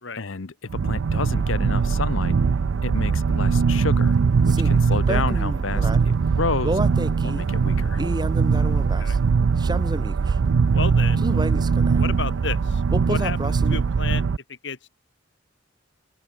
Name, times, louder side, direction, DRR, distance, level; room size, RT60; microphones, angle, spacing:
voice 1, 0.2-2.4 2.8-4.2 4.4-6.8 7.2-8.0, left 4 dB, 90° left, 0.9 m, -30 dB
sound 1, 0.7-14.4, right 5 dB, 85° right, 0.4 m, -21 dB
sound 2, 4.5-6.0 6.6-7.5 7.9-9.2 9.6-10.3 11.2-12.0 12.9-14.0, right 1 dB, 20° right, 1.8 m, -30 dB
voice 2, 8.8-9.2 10.7-11.3 12.0-12.8 13.1-14.2 14.5-14.9, left 4 dB, 65° left, 2.1 m, -32 dB
open air
head